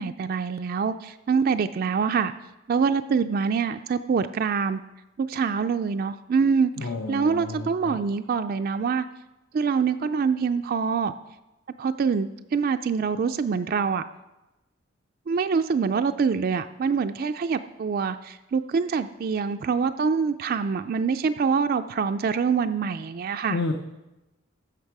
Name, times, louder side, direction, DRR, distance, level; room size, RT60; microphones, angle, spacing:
voice 1, 0.0-2.3 2.7-4.8 5.2-9.0 9.5-11.1 11.8-14.0 15.3-23.6, right 5 dB, 45° right, 8 dB, 0.3 m, -25 dB
voice 2, 6.8-8.0 23.5-23.7, left 3 dB, 65° left, 3 dB, 0.7 m, -30 dB
15.0 x 5.9 x 4.7 m, 0.99 s
head